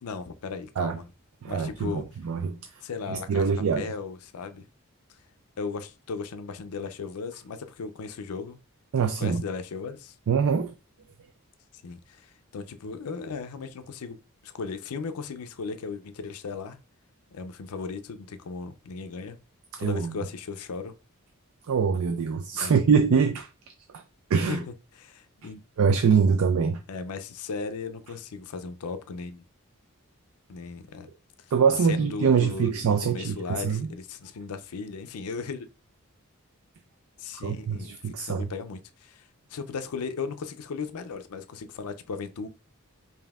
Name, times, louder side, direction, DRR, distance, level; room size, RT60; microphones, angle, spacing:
voice 1, 0.0-1.0 1.5-2.1 2.8-4.7 5.1-5.2 5.6-8.6 9.2-10.1 11.8-16.8 17.3-19.4 19.8-20.9 22.6-22.7 24.5-25.6 26.9-29.4 30.5-31.1 31.4-31.5 31.8-35.7 37.2-42.5, left 5 dB, 85° left, 0.5 m, -36 dB
voice 2, 1.4-2.6 3.1-3.8 8.9-9.4 10.3-10.7 19.8-20.1 21.7-23.5 24.3-24.6 25.8-26.8 31.5-33.8 37.4-38.5, right 6 dB, 80° right, 0.4 m, -24 dB
5.1 x 2.7 x 2.3 m
head